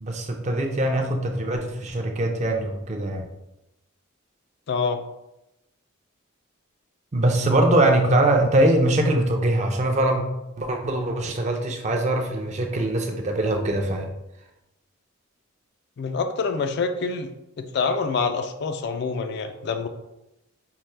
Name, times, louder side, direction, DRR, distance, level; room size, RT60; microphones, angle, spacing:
voice 1, 0.0-3.2 7.1-10.2 10.6-14.1, right 1 dB, 35° right, 3 dB, 0.5 m, -22 dB
voice 2, 4.7-5.0 16.0-17.3 17.7-19.9, left 4 dB, 55° left, 8 dB, 0.3 m, -26 dB
5.6 x 2.1 x 3.2 m, 0.91 s
head